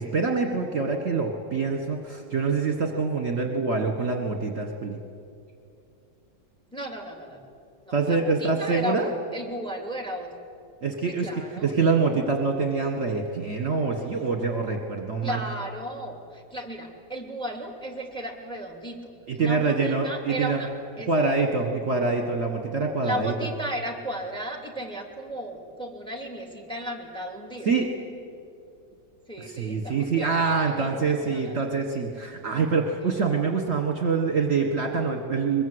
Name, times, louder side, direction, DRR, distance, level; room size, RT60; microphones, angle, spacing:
voice 1, 0.0-5.0 7.9-9.1 10.8-15.4 19.3-20.6 21.1-23.3 27.7-27.9 29.4-35.6, right 4 dB, 45° right, 3 dB, 1.9 m, -25 dB
voice 2, 6.7-7.5 7.8-10.3 11.0-11.7 15.2-19.1 19.4-21.3 23.0-27.7 29.3-31.6, right 1 dB, ahead, 3 dB, 2.7 m, -35 dB
23.5 x 22.5 x 8.1 m, 2.5 s
omnidirectional pair, 2.1 m